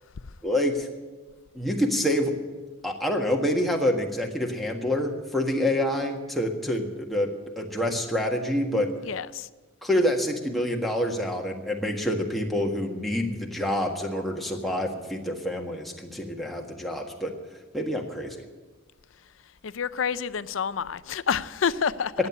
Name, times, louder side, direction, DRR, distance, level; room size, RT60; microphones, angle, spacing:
voice 1, 0.4-0.9 1.5-2.3 2.8-7.3 7.6-8.9 9.8-17.3 17.7-18.4, left 1 dB, ahead, 0 dB, 1.6 m, -27 dB
voice 2, 9.0-9.5 19.6-22.1, left 6 dB, 80° left, 16 dB, 0.5 m, -28 dB
15.0 x 9.6 x 8.4 m, 1.3 s
head